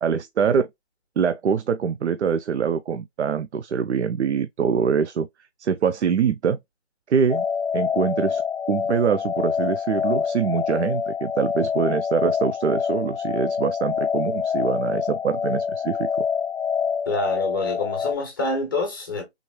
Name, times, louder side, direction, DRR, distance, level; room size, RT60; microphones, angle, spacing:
voice 1, 0.0-0.7 1.2-5.3 5.6-6.6 7.1-7.4 7.7-8.4 8.7-16.1, right 7 dB, 90° right, 0.5 m, -24 dB
sound 1, 7.3-18.1, left 6 dB, 60° left, 0.7 m, -26 dB
voice 2, 17.1-19.2, left 2 dB, 20° left, 0.9 m, -26 dB
3.6 x 3.0 x 2.2 m
hypercardioid pair, 170°, 33 cm